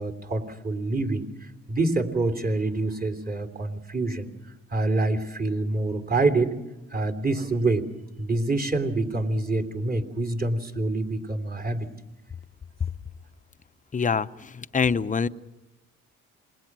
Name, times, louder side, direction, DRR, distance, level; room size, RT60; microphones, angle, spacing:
voice 1, 0.0-4.3 4.7-6.5 6.9-7.9 8.2-11.9, right 2 dB, 30° right, 5 dB, 3.3 m, -26 dB
voice 2, 13.9-15.3, left 5 dB, 25° left, 13 dB, 0.8 m, -25 dB
28.0 x 22.0 x 6.2 m, 1.0 s
cardioid pair, 90°, 30 cm